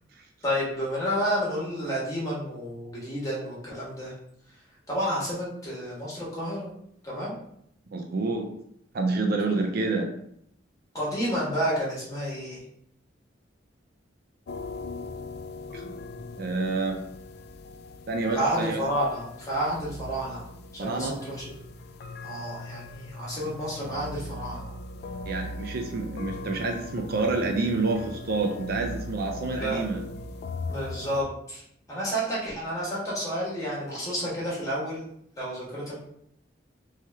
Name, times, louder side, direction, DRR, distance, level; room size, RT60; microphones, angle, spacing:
voice 1, 0.4-4.1 4.9-6.7 7.0-7.3 10.9-12.6 18.3-20.5 20.7-21.4 22.2-24.7 29.5-29.8 30.7-31.6 31.9-35.1 35.4-36.0, equal, 20° left, -6 dB, 1.4 m, -30 dB
voice 2, 7.9-8.5 8.9-10.1 15.7-16.0 16.4-17.0 18.1-18.8 20.8-21.2 23.4-23.5 25.3-30.0, right 3 dB, 55° right, 3 dB, 0.5 m, -28 dB
sound 1, 14.5-31.2, left 2 dB, 55° left, 0.3 m, -39 dB
3.2 x 2.8 x 3.4 m, 0.71 s
head